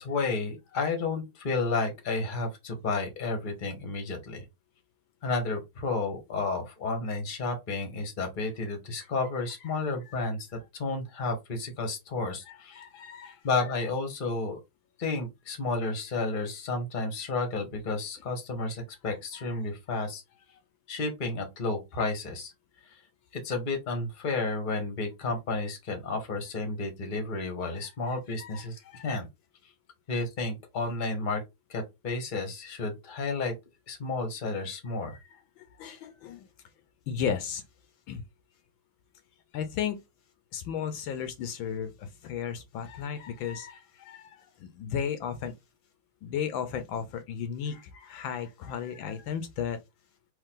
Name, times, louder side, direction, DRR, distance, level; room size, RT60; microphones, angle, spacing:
voice 1, 0.0-4.4 5.2-10.4 10.8-12.8 13.4-14.6 15.0-20.2 20.9-22.5 23.4-29.3 30.1-31.4 31.7-33.5 33.9-35.1, left 3 dB, 30° left, 1.2 m, -31 dB
voice 2, 12.5-13.4 19.3-19.5 27.7-29.1 35.3-36.5 37.1-37.6 38.1-38.2 39.5-40.0 40.5-45.5 46.2-49.8, left 8 dB, 75° left, 1.4 m, -35 dB
4.5 x 3.1 x 3.7 m
omnidirectional pair, 2.3 m